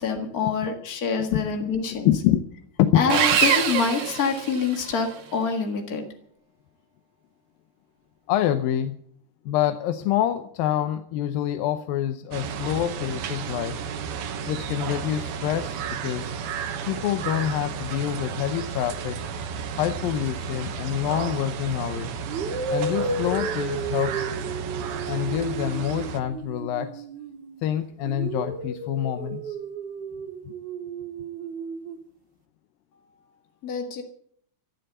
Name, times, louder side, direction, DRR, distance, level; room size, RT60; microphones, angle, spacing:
voice 1, 0.0-2.1 2.9-6.1 33.6-34.0, left 5 dB, 55° left, 4 dB, 1.0 m, -26 dB
voice 2, 1.3-1.7 2.1-2.4 2.8-3.0 8.3-9.0 9.5-13.8 14.4-16.3 16.8-19.2 19.8-22.2 22.7-24.3 25.1-27.0 27.6-29.6 30.5-30.6, left 11 dB, 75° left, 9 dB, 2.4 m, -26 dB
Sawing, 3.1-5.0, right 7 dB, 55° right, 2.6 m, -23 dB
sound 1, 12.3-26.2, right 6 dB, 75° right, 3.2 m, -33 dB
sound 2, 21.2-21.5 22.3-27.6 28.0-32.0, right 3 dB, 35° right, 2.0 m, -33 dB
14.5 x 12.0 x 8.0 m, 0.64 s
omnidirectional pair, 4.6 m